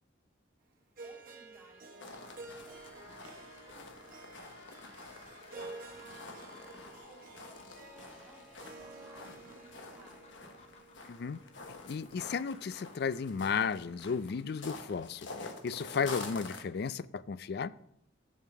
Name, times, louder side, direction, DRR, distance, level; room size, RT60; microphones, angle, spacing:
voice 1, 1.0-2.8 3.3-10.4, right 1 dB, 10° right, -4 dB, 2.3 m, -61 dB
Harp, 1.0-13.1, right 3 dB, 45° right, 1.3 m, -51 dB
sound 1, 2.0-16.6, left 3 dB, 70° left, 1.2 m, -48 dB
sound 2, 2.7-13.9, left 3 dB, 30° left, 0.9 m, -60 dB
voice 2, 11.1-11.4 11.9-15.3 15.6-17.7, left 6 dB, 55° left, 17 dB, 0.3 m, -34 dB
6.9 x 6.5 x 6.7 m, 0.73 s
head